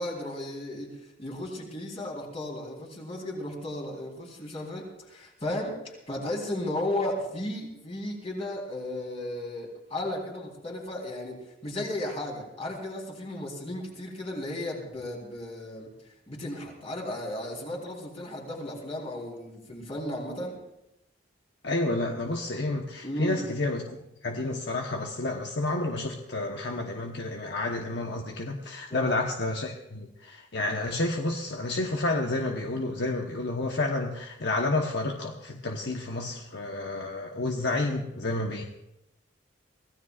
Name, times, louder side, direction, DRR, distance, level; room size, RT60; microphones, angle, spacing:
voice 1, 0.0-15.9 16.3-20.6 23.0-23.4 28.9-29.2, left 1 dB, 35° left, -1 dB, 3.9 m, -35 dB
voice 2, 21.6-23.8 24.2-38.6, left 2 dB, 65° left, 2 dB, 1.1 m, -30 dB
24.5 x 16.5 x 2.5 m, 0.86 s
head